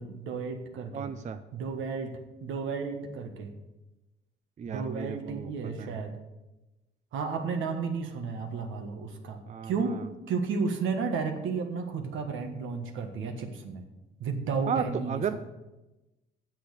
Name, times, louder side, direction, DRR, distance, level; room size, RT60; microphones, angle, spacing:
voice 1, 0.0-1.1 1.5-3.5 4.7-6.2 7.1-10.0 10.3-13.8 14.2-15.2, right 5 dB, 80° right, 5 dB, 1.5 m, -33 dB
voice 2, 0.9-1.4 4.6-5.5 5.8-6.0 9.5-10.0 14.7-15.4, right 7 dB, 35° right, 10 dB, 0.5 m, -34 dB
7.9 x 6.9 x 8.0 m, 1.0 s
cardioid pair, 90°, 20 cm